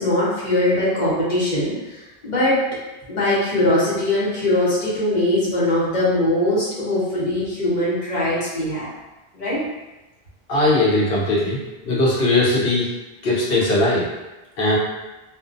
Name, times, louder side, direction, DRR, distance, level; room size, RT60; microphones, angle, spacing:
voice 1, 0.0-2.6 3.1-8.9 9.3-9.6, left 1 dB, 50° left, -9 dB, 1.0 m, -21 dB
voice 2, 10.5-12.9 13.2-14.1 14.6-14.8, left 2 dB, 70° left, -6 dB, 0.9 m, -19 dB
2.4 x 2.2 x 2.5 m, 1.1 s
omnidirectional pair, 1.0 m